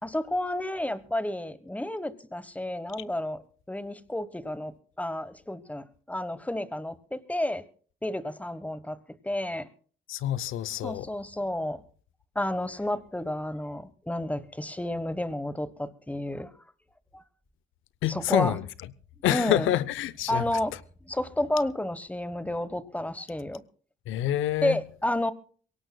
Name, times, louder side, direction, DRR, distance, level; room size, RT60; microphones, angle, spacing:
voice 1, 0.0-7.6 8.0-9.0 9.2-9.7 10.8-11.8 12.3-16.5 17.1-17.2 18.1-18.6 19.3-19.7 20.3-20.8 21.0-23.6 24.6-25.3, left 1 dB, 5° left, 1.2 m, -31 dB
voice 2, 10.1-11.1 18.0-18.6 19.2-20.4 24.1-24.8, left 13 dB, 85° left, 0.7 m, -27 dB
23.0 x 17.5 x 2.3 m
cardioid pair, 90°, 20 cm